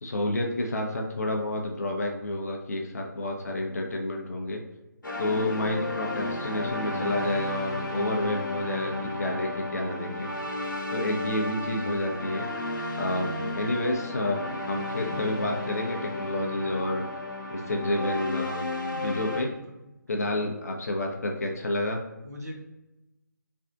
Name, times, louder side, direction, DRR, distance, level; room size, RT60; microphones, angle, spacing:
voice 1, 0.0-4.6 5.2-10.3 10.9-12.5 13.0-14.4 14.7-17.0 17.5-18.6 19.0-19.5 20.1-22.0, left 1 dB, 50° left, 1 dB, 0.6 m, -29 dB
sound 1, 5.0-19.4, left 2 dB, 70° left, 1.0 m, -33 dB
voice 2, 13.4-13.7 15.0-15.2 18.9-19.5 22.2-22.5, equal, 55° right, -1 dB, 1.0 m, -41 dB
3.4 x 2.4 x 3.8 m, 0.99 s
figure-of-eight pair, 150°, 11 cm